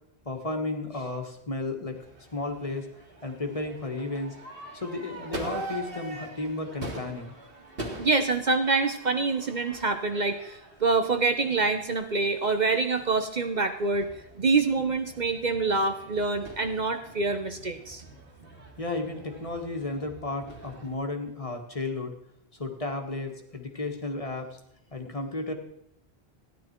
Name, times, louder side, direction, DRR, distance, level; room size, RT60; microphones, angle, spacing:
voice 1, 0.2-2.0 2.3-2.9 3.2-4.3 4.7-7.3 18.8-22.1 22.6-24.6 24.9-25.5, left 2 dB, 35° left, 3 dB, 1.6 m, -33 dB
Crowd / Fireworks, 1.9-20.9, right 2 dB, 65° right, 2.4 m, -44 dB
voice 2, 8.0-14.1 14.4-18.0, right 3 dB, 50° right, 7 dB, 1.0 m, -26 dB
15.0 x 10.5 x 4.5 m, 0.74 s
omnidirectional pair, 1.0 m